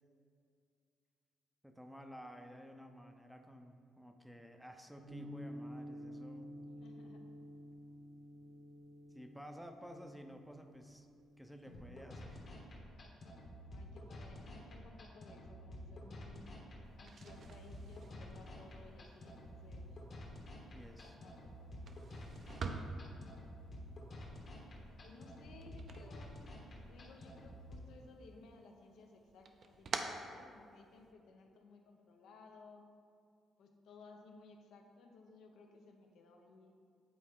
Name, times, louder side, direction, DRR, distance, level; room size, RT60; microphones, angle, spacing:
voice 1, 1.6-6.5 9.1-11.1 11.4-12.5 20.7-21.2 26.8-26.9 31.3-31.4, equal, ahead, 5 dB, 0.5 m, -53 dB
sound 1, 5.1-11.9, equal, 90° right, 1.7 m, -51 dB
voice 2, 6.8-7.3 13.7-16.5 16.9-20.0 20.9-21.8 25.0-26.3 26.9-32.8 33.6-36.8, left 3 dB, 80° left, 3 dB, 0.7 m, -59 dB
sound 2, 11.7-27.7, left 1 dB, 50° left, 1.2 m, -51 dB
sound 3, 16.9-26.9 27.3-28.1 28.5-31.1, right 4 dB, 50° right, 0.5 m, -48 dB
8.5 x 4.0 x 3.7 m, 2.3 s
cardioid pair, 90°, 0 cm